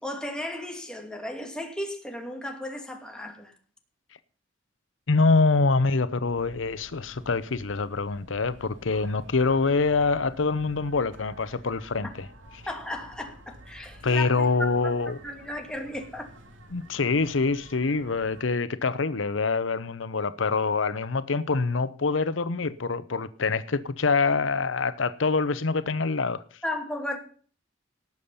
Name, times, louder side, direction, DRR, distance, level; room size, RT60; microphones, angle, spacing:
voice 1, 0.0-3.5 12.0-12.1 12.7-14.5 14.8-16.3 26.6-27.2, left 1 dB, 5° left, 2.5 m, -35 dB
voice 2, 5.1-12.3 14.0-15.2 16.7-26.4, left 4 dB, 90° left, 0.8 m, -25 dB
sound 1, 6.2-18.4, equal, 80° right, 2.6 m, -50 dB
18.5 x 7.2 x 5.5 m
head